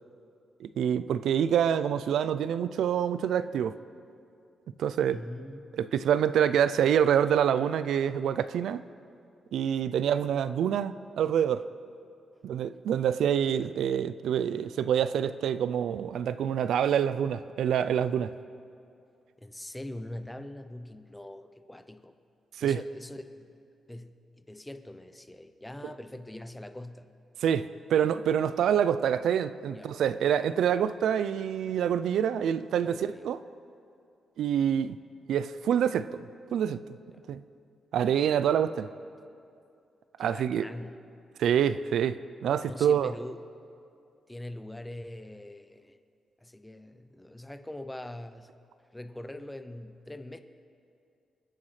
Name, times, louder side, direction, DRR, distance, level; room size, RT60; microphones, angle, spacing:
voice 1, 0.6-3.7 4.8-5.2 5.7-8.8 9.5-11.6 12.4-18.3 22.6-22.8 27.4-33.4 34.4-35.0 35.3-36.2 36.5-37.0 37.3-37.4 37.9-38.9 40.2-40.6 41.4-43.1, right 9 dB, 85° right, 14 dB, 0.4 m, -26 dB
voice 2, 5.1-5.6 19.4-22.1 22.6-23.6 23.9-27.1 29.7-30.0 32.9-33.3 37.1-37.3 40.2-41.0 42.6-43.4 44.3-46.0 46.4-48.6 48.9-50.4, left 1 dB, 5° left, 9 dB, 0.6 m, -43 dB
28.0 x 9.7 x 3.2 m, 2.5 s
wide cardioid pair, 160°, 0 cm